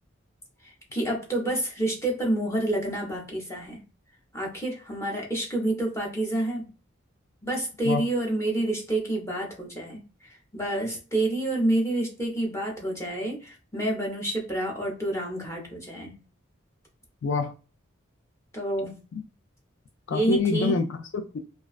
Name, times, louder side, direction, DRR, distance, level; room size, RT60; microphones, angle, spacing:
voice 1, 0.9-3.8 4.3-6.7 7.4-16.1 18.5-19.0 20.1-20.8, right 1 dB, 15° left, 0.6 m, -28 dB
voice 2, 17.2-17.5 19.1-19.2 20.1-21.4, left 4 dB, 65° left, 0.3 m, -26 dB
2.4 x 2.2 x 2.3 m
head